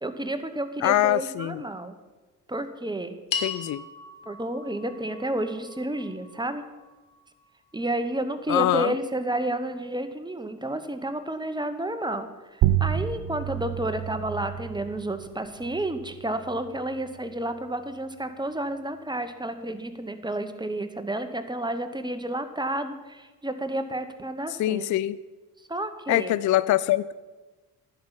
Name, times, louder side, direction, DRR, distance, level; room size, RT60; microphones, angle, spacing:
voice 1, 0.0-1.9 2.5-3.2 4.3-6.6 7.7-24.9 25.7-26.3, right 1 dB, 10° right, 8 dB, 1.2 m, -31 dB
voice 2, 0.8-1.6 3.4-3.8 8.5-8.9 24.6-25.2 26.1-27.1, left 14 dB, 40° left, 17 dB, 0.4 m, -23 dB
sound 1, 3.3-7.8, left 6 dB, 65° left, 1.6 m, -38 dB
sound 2, 12.6-17.7, right 12 dB, 55° right, 0.7 m, -30 dB
10.0 x 5.9 x 7.1 m, 1.2 s
hypercardioid pair, 45°, 48 cm